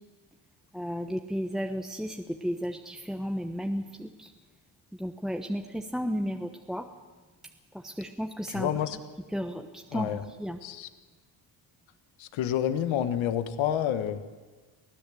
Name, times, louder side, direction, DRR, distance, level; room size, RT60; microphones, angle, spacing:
voice 1, 0.7-4.3 5.0-6.9 7.8-8.7 9.3-9.7 9.9-10.6, equal, ahead, 3 dB, 1.1 m, -33 dB
voice 2, 8.5-9.0 9.9-10.2 10.6-10.9 12.2-14.2, left 10 dB, 85° left, 10 dB, 1.5 m, -29 dB
24.5 x 15.5 x 7.7 m, 1.4 s
cardioid pair, 100°, 46 cm